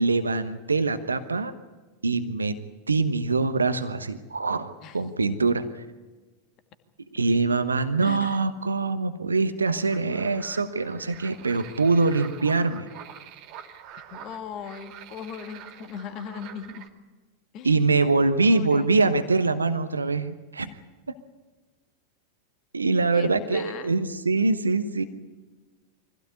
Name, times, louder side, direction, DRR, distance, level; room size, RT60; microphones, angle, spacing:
voice 1, 0.0-1.5 2.0-2.6 2.9-5.8 7.1-12.9 17.6-20.7 22.7-25.0, right 3 dB, 75° right, 10 dB, 1.1 m, -24 dB
voice 2, 8.0-8.4 14.1-16.9 17.5-17.9 18.5-19.2 23.0-24.0, left 7 dB, 35° left, 8 dB, 2.0 m, -39 dB
sound 1, 9.9-16.9, right 9 dB, 40° right, 2.8 m, -45 dB
24.5 x 16.5 x 9.8 m, 1.3 s
figure-of-eight pair, 90°, 0 cm